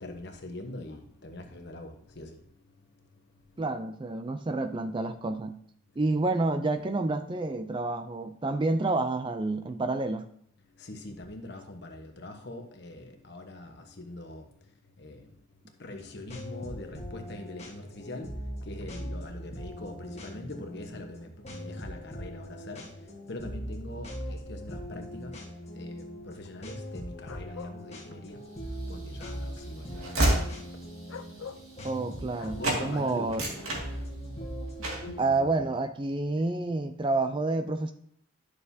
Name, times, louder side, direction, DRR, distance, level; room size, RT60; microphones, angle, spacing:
voice 1, 0.0-2.4 10.8-14.5 15.0-15.3 15.8-18.3 18.6-22.9 23.3-25.3 25.7-28.4 28.9-30.1 30.7-30.8 32.6-33.3, left 2 dB, 55° left, 1.2 m, -43 dB
voice 2, 3.6-5.6 6.0-10.3 31.8-33.4 35.2-37.9, right 2 dB, 25° right, 0.4 m, -29 dB
sound 1, 15.9-35.6, equal, 30° left, 1.3 m, -41 dB
sound 2, 27.3-27.8 31.1-31.6 32.4-32.6, left 6 dB, 70° left, 0.6 m, -43 dB
Train / Slam, 28.7-32.4 32.6-32.9 33.2-34.4 34.8-35.2, right 1 dB, 85° right, 2.2 m, -31 dB
11.0 x 6.5 x 2.8 m
head